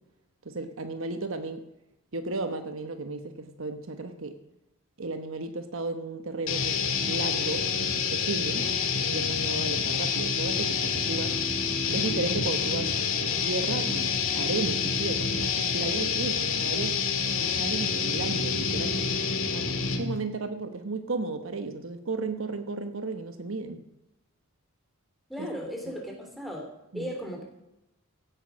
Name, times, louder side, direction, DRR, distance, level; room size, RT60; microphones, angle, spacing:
voice 1, 0.4-1.7 2.1-4.4 5.0-8.7 9.1-11.4 11.9-12.9 13.2-17.0 17.6-19.1 19.5-23.8 25.4-25.5 26.9-27.1, right 3 dB, 65° right, 8 dB, 1.1 m, -34 dB
sound 1, 6.5-20.2, left 5 dB, 65° left, 2.0 m, -28 dB
voice 2, 25.3-26.7 26.9-27.4, equal, ahead, 0 dB, 3.2 m, -36 dB
16.0 x 9.0 x 6.3 m, 0.90 s
head